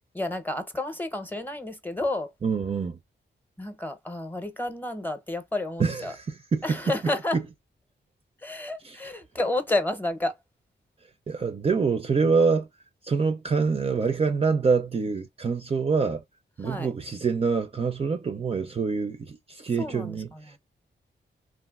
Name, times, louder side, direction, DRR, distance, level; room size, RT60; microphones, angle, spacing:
voice 1, 0.1-2.3 3.6-6.1 6.6-7.4 8.4-10.3 16.6-16.9 19.8-20.6, left 2 dB, 10° left, 0.7 m, -30 dB
voice 2, 2.4-3.0 5.8-6.8 8.8-9.0 11.3-12.7 13.0-16.2 16.6-20.3, right 5 dB, 30° right, 0.4 m, -25 dB
3.1 x 2.4 x 2.3 m
wide cardioid pair, 125°, 19 cm